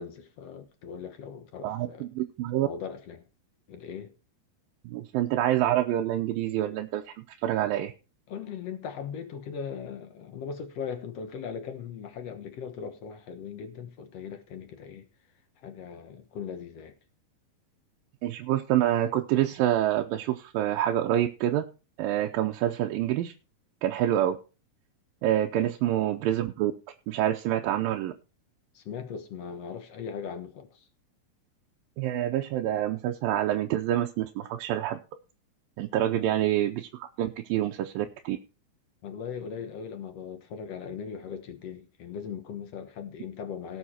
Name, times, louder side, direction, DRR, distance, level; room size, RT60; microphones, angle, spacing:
voice 1, 0.0-2.1 2.6-3.2 3.7-4.1 8.3-15.1 15.6-16.9 25.5-26.0 28.7-30.9 36.0-36.3 39.0-43.8, left 7 dB, 60° left, 1.7 m, -39 dB
voice 2, 1.6-2.7 4.9-7.0 7.4-7.9 18.2-21.6 22.0-23.3 23.8-24.4 25.2-26.7 27.1-28.1 32.0-35.0 35.8-38.4, right 12 dB, 75° right, 2.4 m, -27 dB
18.0 x 7.1 x 4.3 m
omnidirectional pair, 4.4 m